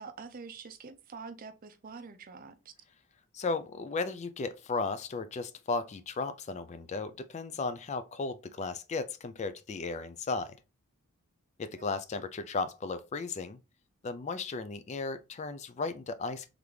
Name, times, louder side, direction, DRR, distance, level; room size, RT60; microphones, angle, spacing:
voice 1, 0.0-2.7 11.8-11.9, right 5 dB, 40° right, 0.5 m, -46 dB
voice 2, 3.3-10.6 11.6-13.6 14.0-16.5, left 4 dB, 30° left, 0.3 m, -35 dB
3.9 x 3.3 x 3.1 m
head